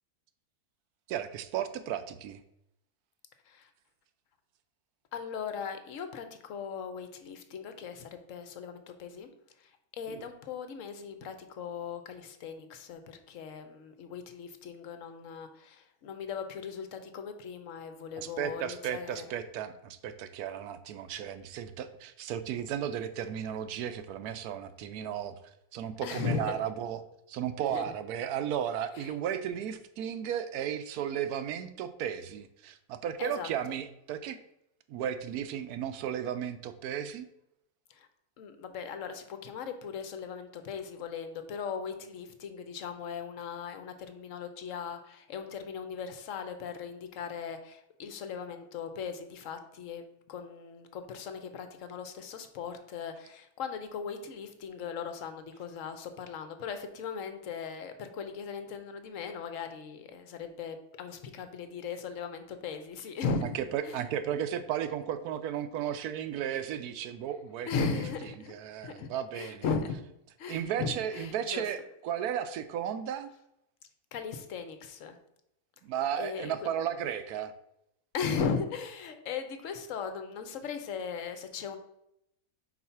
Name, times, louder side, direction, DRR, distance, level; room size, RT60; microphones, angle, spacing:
voice 1, 1.1-2.4 10.1-10.2 18.2-25.4 25.7-27.0 27.3-34.4 34.9-37.3 63.5-68.0 68.5-69.6 70.5-73.3 75.8-77.5, right 9 dB, 80° right, 11 dB, 1.1 m, -34 dB
voice 2, 5.1-9.3 9.6-9.7 10.0-19.3 26.0-26.5 27.7-27.8 28.9-29.1 33.2-33.8 37.9-38.1 38.4-63.4 63.8-64.0 67.7-68.5 68.8-70.0 70.4-71.6 74.1-75.2 76.2-76.5 78.1-81.8, left 6 dB, 65° left, 8 dB, 1.1 m, -38 dB
4.8 x 4.1 x 5.7 m, 0.80 s
omnidirectional pair, 1.6 m